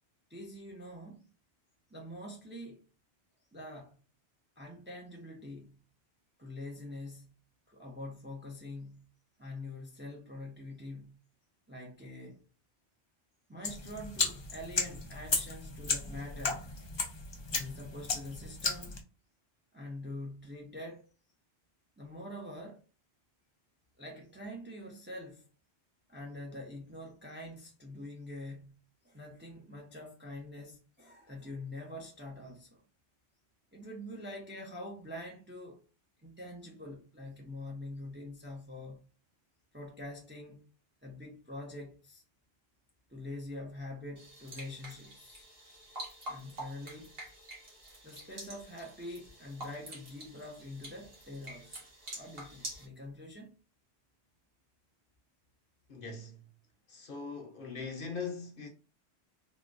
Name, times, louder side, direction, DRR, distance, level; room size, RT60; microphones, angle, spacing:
voice 1, 0.3-1.3 1.9-2.9 3.5-3.9 4.6-5.8 6.4-7.4 7.7-9.1 9.4-11.2 11.7-12.4 13.5-16.7 17.5-19.0 19.7-21.1 22.0-22.8 24.0-25.4 26.1-28.8 29.0-32.8 33.7-35.8 36.2-39.0 39.7-40.7 41.0-42.2 43.1-45.5 46.3-47.1 48.0-51.8 52.1-53.5, left 1 dB, 15° right, 0.5 m, -45 dB
sound 1, 13.6-19.0, left 4 dB, 40° left, 0.4 m, -35 dB
sound 2, 44.2-52.9, right 1 dB, 60° right, 1.4 m, -47 dB
voice 2, 55.9-56.5 56.9-58.7, left 5 dB, 55° left, 0.9 m, -41 dB
3.7 x 2.2 x 2.5 m
omnidirectional pair, 1.1 m